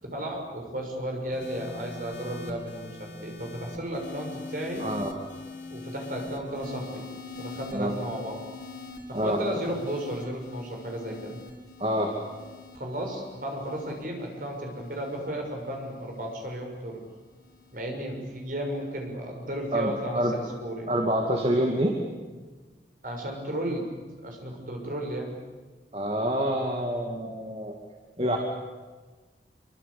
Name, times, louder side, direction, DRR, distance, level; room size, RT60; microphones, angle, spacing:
voice 1, 0.0-4.8 5.7-7.0 7.3-8.4 9.1-11.4 12.7-17.0 17.7-20.9 23.0-25.3 28.3-28.4, equal, 50° right, 1 dB, 6.7 m, -34 dB
sound 1, 1.3-17.8 18.7-19.1, left 3 dB, 85° left, 4.2 m, -43 dB
voice 2, 4.8-5.1 7.7-7.9 9.1-9.4 11.8-12.1 19.7-20.3 20.9-21.9 25.9-27.7 28.2-28.4, equal, 35° right, 1 dB, 2.4 m, -26 dB
26.5 x 24.5 x 8.6 m, 1.3 s
head